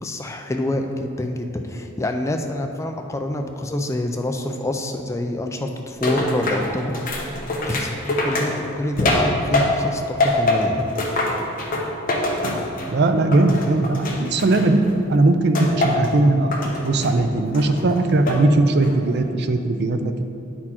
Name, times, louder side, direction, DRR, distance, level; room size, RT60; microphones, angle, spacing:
voice 1, 0.0-7.2 7.6-10.8, left 1 dB, 15° left, 4 dB, 0.3 m, -26 dB
sound 1, 6.0-9.9 10.2-13.0 13.3-14.9 15.5-16.1 16.5-17.2 17.5-18.4 18.8-19.2, left 2 dB, 45° left, 1.0 m, -24 dB
voice 2, 12.9-14.8 15.1-20.2, right 2 dB, 55° right, 8 dB, 0.4 m, -19 dB
9.6 x 4.4 x 4.3 m, 2.6 s
head